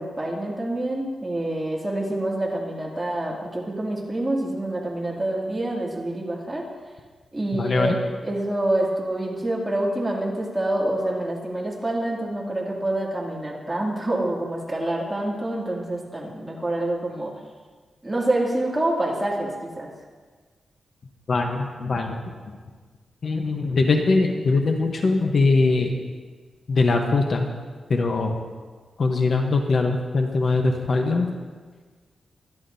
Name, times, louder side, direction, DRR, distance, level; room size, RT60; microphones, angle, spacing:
voice 1, 0.0-6.7 7.3-8.0 8.2-17.3 18.0-19.9, right 1 dB, 15° right, -4 dB, 2.4 m, -27 dB
voice 2, 7.5-8.0 21.3-22.2 22.5-22.6 23.2-26.0 26.7-27.4 27.9-28.4 29.0-31.3, left 3 dB, 50° left, 3 dB, 0.9 m, -21 dB
24.0 x 10.5 x 2.7 m, 1.5 s
wide cardioid pair, 160°, 0 cm